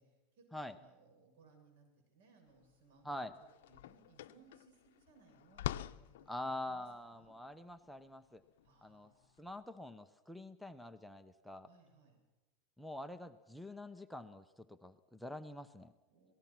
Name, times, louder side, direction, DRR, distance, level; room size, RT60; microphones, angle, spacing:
voice 1, 0.0-7.3 8.6-9.3 11.6-12.2 16.1-16.3, right 3 dB, 80° right, 4 dB, 7.4 m, -66 dB
sound 1, 2.6-2.7 3.1-9.5, left 13 dB, 85° left, 0.6 m, -46 dB
voice 2, 6.3-8.4 8.8-9.1 9.4-11.7 12.8-15.9, left 1 dB, ahead, 7 dB, 0.7 m, -46 dB
27.0 x 18.5 x 6.0 m, 1.1 s
supercardioid pair, 155°, 0 cm